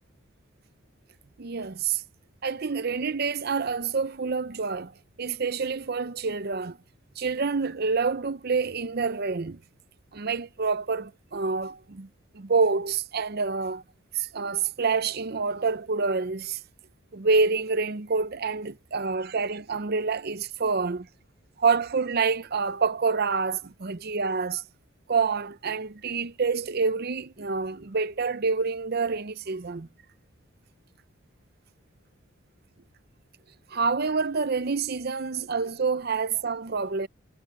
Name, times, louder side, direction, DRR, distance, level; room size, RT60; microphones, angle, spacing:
voice 1, 1.4-2.0 2.4-4.9 5.2-6.8 7.2-9.6 10.1-12.1 12.3-13.8 14.1-16.6 17.1-21.1 21.6-24.6 25.1-29.9 33.7-37.1, right 4 dB, 50° right, 0.7 m, -27 dB
head